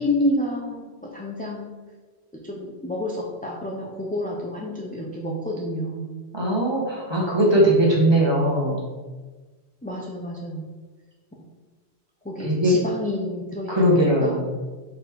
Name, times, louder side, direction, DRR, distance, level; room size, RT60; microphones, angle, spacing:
voice 1, 0.0-1.7 2.5-6.1 9.8-10.6 12.2-14.4, left 1 dB, 10° left, -3 dB, 0.6 m, -29 dB
voice 2, 6.3-8.9 12.4-12.7 13.7-14.7, right 1 dB, 25° right, -4 dB, 1.5 m, -20 dB
5.1 x 4.4 x 4.7 m, 1.3 s
omnidirectional pair, 1.1 m